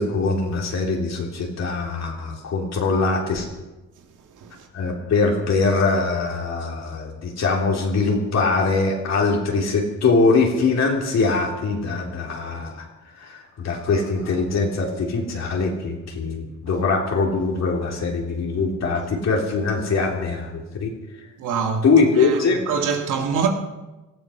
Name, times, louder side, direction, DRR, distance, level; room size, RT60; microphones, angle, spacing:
voice 1, 0.0-3.5 4.7-12.9 13.2-20.9 21.8-22.6, left 4 dB, 60° left, 3.5 m, -22 dB
voice 2, 21.4-21.9 22.2-22.4 22.7-23.5, right 6 dB, 85° right, 2.1 m, -24 dB
19.0 x 13.0 x 5.8 m
cardioid pair, 90°, 30 cm